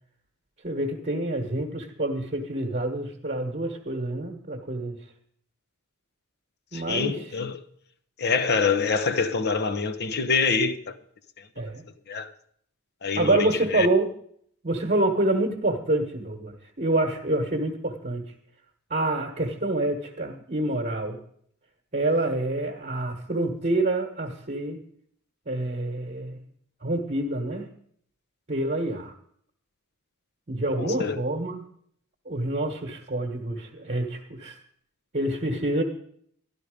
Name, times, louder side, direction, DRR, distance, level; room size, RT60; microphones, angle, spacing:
voice 1, 0.6-5.0 6.7-7.3 11.6-11.8 13.1-14.1 14.6-18.3 18.9-21.2 21.9-24.8 25.5-26.4 26.8-27.7 28.5-29.1 30.5-31.6 32.2-34.6 35.1-35.8, right 2 dB, 35° right, 1.3 m, -27 dB
voice 2, 6.7-7.6 8.2-10.9 12.1-12.3 13.0-13.9 30.8-31.2, left 5 dB, 50° left, 0.9 m, -26 dB
12.5 x 11.5 x 5.0 m
head